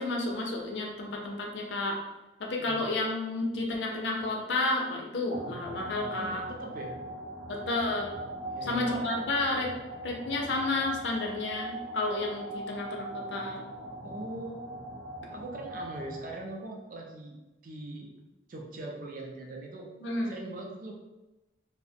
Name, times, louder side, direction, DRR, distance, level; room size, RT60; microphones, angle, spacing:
voice 1, 0.0-2.0 2.4-6.4 7.5-8.1 8.7-9.7 10.0-13.6 20.0-20.3, left 2 dB, 70° left, 0 dB, 0.5 m, -31 dB
voice 2, 2.6-2.9 6.2-7.0 8.5-9.1 14.0-14.7 15.3-17.4 17.6-18.1 18.5-19.9 20.3-20.9, right 2 dB, 45° right, 0 dB, 0.4 m, -41 dB
sound 1, 5.3-16.7, right 1 dB, 90° right, 0.8 m, -40 dB
2.4 x 2.0 x 2.6 m, 1.0 s
head